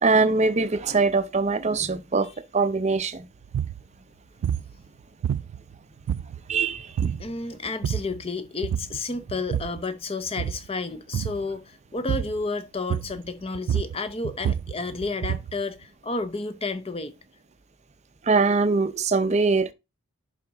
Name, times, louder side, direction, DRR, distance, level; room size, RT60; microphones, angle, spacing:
voice 1, 0.0-2.3 2.5-3.3 6.5-7.2 18.2-19.7, right 4 dB, 30° right, 0.6 m, -22 dB
sound 1, 3.4-3.8 4.4-4.7 5.2-5.7 6.1-6.6 7.0-7.3 7.7-8.2 8.6-9.0 9.3-9.8 10.3-10.7 11.1-11.4 12.1-12.4 12.9-13.3 13.5-15.6, right 9 dB, 85° right, 0.3 m, -28 dB
voice 2, 7.2-17.1, left 3 dB, 25° left, 0.7 m, -31 dB
10.5 x 4.2 x 3.8 m
head